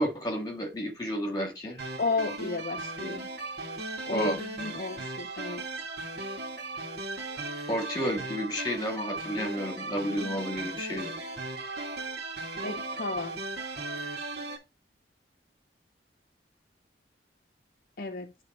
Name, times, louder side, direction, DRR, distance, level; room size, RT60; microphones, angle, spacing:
voice 1, 0.0-1.8 4.1-4.4 7.7-11.1, equal, 25° left, 1.9 m, -31 dB
sound 1, 1.8-14.6, right 2 dB, 65° right, 2.0 m, -37 dB
voice 2, 2.0-3.3 4.1-5.6 12.6-13.3 18.0-18.3, left 3 dB, 55° left, 0.6 m, -33 dB
9.9 x 3.4 x 4.2 m
head